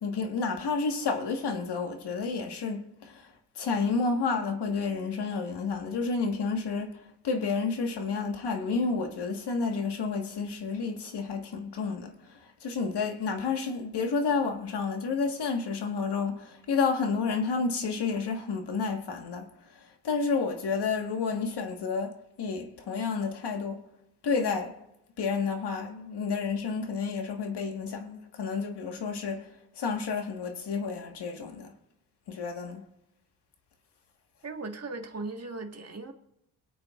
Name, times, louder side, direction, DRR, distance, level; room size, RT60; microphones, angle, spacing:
voice 1, 0.0-6.9 7.2-23.8 24.2-24.8 25.2-29.5 29.7-31.7 32.3-32.8, left 4 dB, 80° left, 1.7 m, -30 dB
voice 2, 34.4-36.1, right 3 dB, 40° right, 1.7 m, -38 dB
22.5 x 8.7 x 2.5 m
cardioid pair, 95°, 40 cm